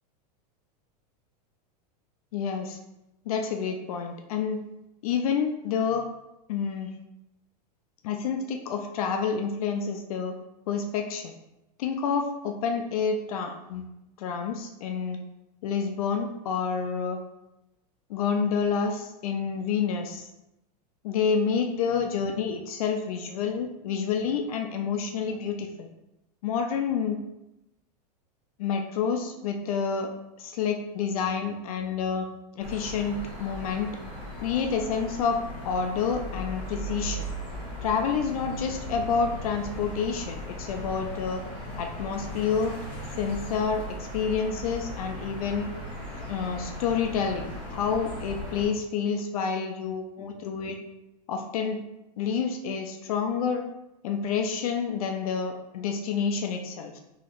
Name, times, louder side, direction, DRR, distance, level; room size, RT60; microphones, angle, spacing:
voice 1, 2.3-2.8 3.3-4.6 5.0-6.1 6.5-6.9 8.0-10.4 10.7-11.3 11.8-13.8 14.2-15.2 15.6-17.2 18.1-20.3 21.0-25.9 26.4-27.2 28.6-30.1 30.4-32.3 32.6-33.9 34.4-35.4 35.6-37.3 37.8-41.4 41.8-42.7 43.2-43.9 44.1-45.7 46.3-50.8 51.3-51.8 52.2-53.6 54.0-57.0, left 6 dB, 60° left, 4 dB, 0.4 m, -28 dB
sound 1, 32.6-48.7, equal, 5° left, 1.1 m, -37 dB
4.0 x 2.9 x 2.5 m, 0.91 s
supercardioid pair, 175°, 21 cm